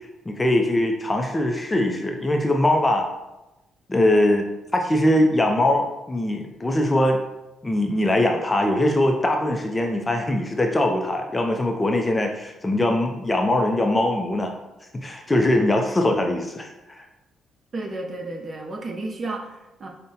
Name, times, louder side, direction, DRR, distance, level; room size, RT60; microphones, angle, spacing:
voice 1, 0.3-3.1 3.9-7.2 7.6-14.5 14.9-17.1, left 1 dB, 20° left, 3 dB, 0.4 m, -22 dB
voice 2, 17.7-19.9, right 2 dB, 40° right, 1 dB, 0.6 m, -32 dB
5.3 x 2.1 x 2.7 m, 0.99 s
cardioid pair, 90°, 0 cm